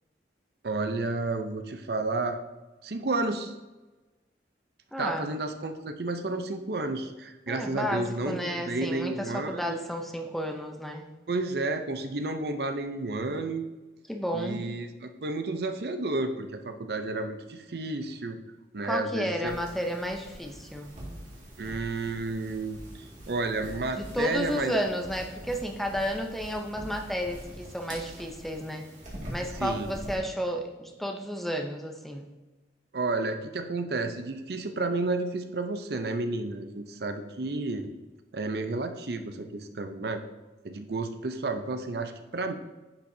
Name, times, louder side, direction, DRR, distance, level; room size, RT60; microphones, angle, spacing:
voice 1, 0.6-2.4 2.8-3.5 5.0-9.9 11.3-13.7 14.3-18.4 18.7-19.7 21.6-24.7 29.5-29.9 32.9-37.9 38.3-40.2 40.6-42.5, right 2 dB, 60° right, 8 dB, 0.6 m, -31 dB
voice 2, 4.9-5.3 7.5-11.0 14.1-14.6 18.8-20.9 23.9-28.9 29.3-32.3, equal, ahead, 3 dB, 0.6 m, -32 dB
sound 1, 19.4-30.2, right 1 dB, 45° right, 2.1 m, -44 dB
10.0 x 5.8 x 2.7 m, 1.1 s
head